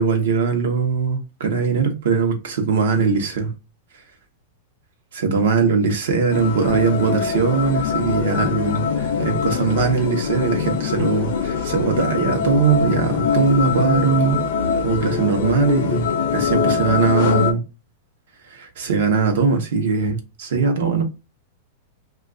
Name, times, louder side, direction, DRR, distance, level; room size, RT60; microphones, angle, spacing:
voice 1, 0.0-3.5 5.1-14.4 14.8-17.6 18.5-21.0, right 5 dB, 70° right, 0.8 m, -20 dB
sound 1, 6.3-17.5, left 6 dB, 50° left, 0.4 m, -23 dB
2.4 x 2.3 x 3.7 m
supercardioid pair, 175°, 0 cm